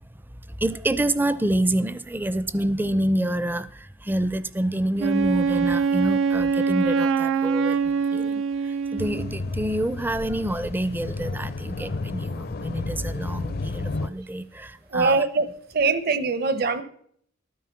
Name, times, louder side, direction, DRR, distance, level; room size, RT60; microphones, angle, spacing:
voice 1, 0.5-15.2, right 1 dB, 10° right, 0.4 m, -27 dB
Wind instrument woodwind instrument, 5.0-9.4, right 5 dB, 85° right, 0.5 m, -23 dB
sound 1, 9.0-14.1, left 3 dB, 50° left, 0.5 m, -32 dB
voice 2, 14.9-16.8, right 4 dB, 50° right, 0.9 m, -23 dB
12.0 x 9.4 x 5.8 m
head